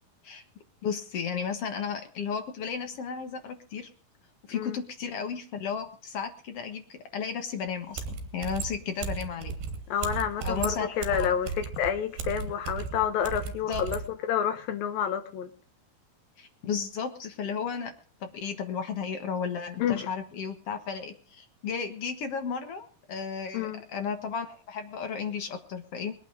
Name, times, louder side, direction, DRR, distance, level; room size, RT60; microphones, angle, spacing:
voice 1, 0.8-3.9 4.5-9.6 10.4-11.3 13.7-13.8 16.4-17.9 18.2-26.1, left 6 dB, 55° left, 1.8 m, -34 dB
sound 1, 7.7-7.8 7.9-14.1, right 5 dB, 75° right, 3.5 m, -35 dB
voice 2, 9.9-15.5 19.8-20.1 23.5-23.8, left 9 dB, 70° left, 3.0 m, -29 dB
21.0 x 9.2 x 5.0 m
omnidirectional pair, 4.4 m